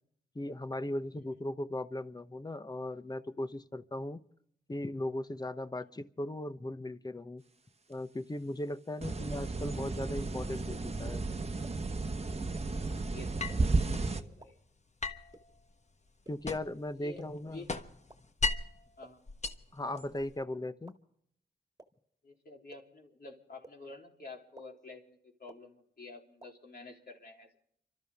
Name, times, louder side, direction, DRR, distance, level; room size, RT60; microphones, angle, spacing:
voice 1, 0.3-4.2 4.7-7.4 7.9-11.2 16.3-17.6 19.7-20.9, left 1 dB, 20° left, 12 dB, 0.9 m, -38 dB
sound 1, 9.0-14.2, right 3 dB, 35° right, 1.1 m, -33 dB
sound 2, 9.8-9.9 10.7-10.8 11.6-11.7 12.6-12.7 13.5-13.6 14.4-14.5 15.3-15.4 16.3-16.4 17.2-17.3 18.1-18.2 19.0-19.1 19.9-20.0 20.9-21.0 21.8-21.9 22.7-22.8 23.6-23.7 24.6-24.7 25.5-25.6 26.4-26.5, right 2 dB, 20° right, 1.9 m, -51 dB
voice 2, 12.8-13.9 14.1-14.6 17.0-17.7 19.0-19.2 22.2-27.6, left 3 dB, 55° left, 0 dB, 3.5 m, -50 dB
sound 3, 13.4-14.1 15.0-16.9 17.2-18.8 19.3-20.4, left 3 dB, 40° left, 1.3 m, -37 dB
30.0 x 13.0 x 3.6 m, 0.68 s
cardioid pair, 60°, 18 cm